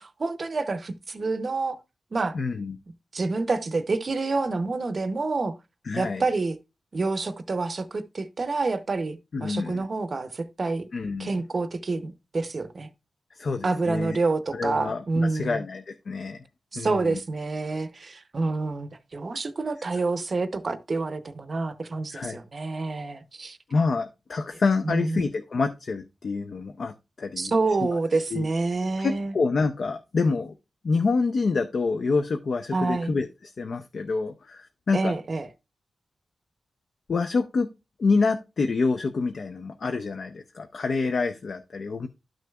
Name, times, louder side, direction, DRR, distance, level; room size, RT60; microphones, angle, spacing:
voice 1, 0.0-1.8 2.1-2.3 3.1-5.5 6.0-6.6 6.9-10.9 11.2-12.9 13.6-15.6 16.7-23.6 24.8-25.2 27.4-29.3 32.7-33.1 34.9-35.5, right 3 dB, 40° right, 0.6 m, -28 dB
voice 2, 2.3-2.8 5.9-6.2 9.3-9.9 10.9-11.4 13.4-14.2 14.5-16.4 16.8-17.2 22.1-22.4 23.7-27.5 28.3-28.5 29.0-30.5 30.8-35.1 37.1-37.7 38.0-42.1, left 4 dB, 55° left, 0.6 m, -27 dB
11.5 x 6.3 x 2.3 m
wide cardioid pair, 130°, 0 cm